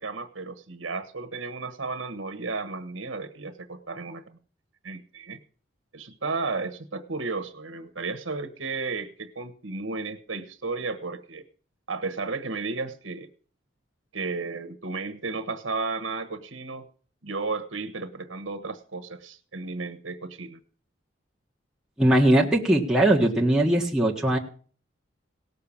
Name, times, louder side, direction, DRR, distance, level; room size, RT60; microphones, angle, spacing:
voice 1, 0.0-4.4 4.8-5.4 5.9-11.4 11.9-13.3 14.1-16.8 17.2-20.6, right 3 dB, 75° right, 9 dB, 1.3 m, -33 dB
voice 2, 22.0-24.4, right 1 dB, 5° right, -3 dB, 1.6 m, -20 dB
17.5 x 6.7 x 7.2 m, 0.43 s
head